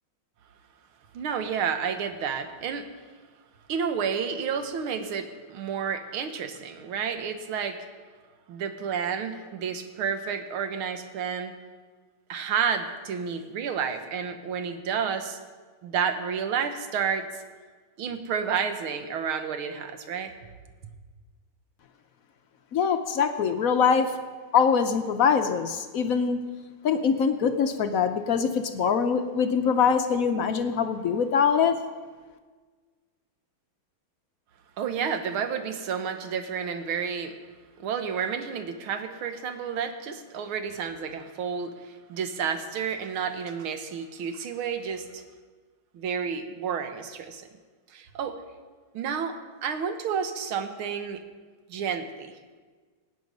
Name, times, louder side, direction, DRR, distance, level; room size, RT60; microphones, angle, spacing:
voice 1, 1.1-2.9 3.7-7.8 8.5-11.5 12.3-15.4 15.8-17.4 18.0-20.3 34.8-37.4 37.8-45.2 45.9-47.5 47.9-48.4 48.9-51.2 51.7-52.4, right 7 dB, 75° right, 8 dB, 1.9 m, -30 dB
voice 2, 22.7-24.1 24.5-26.4 26.8-31.8, left 6 dB, 65° left, 8 dB, 0.8 m, -23 dB
17.5 x 9.6 x 5.3 m, 1.4 s
omnidirectional pair, 2.4 m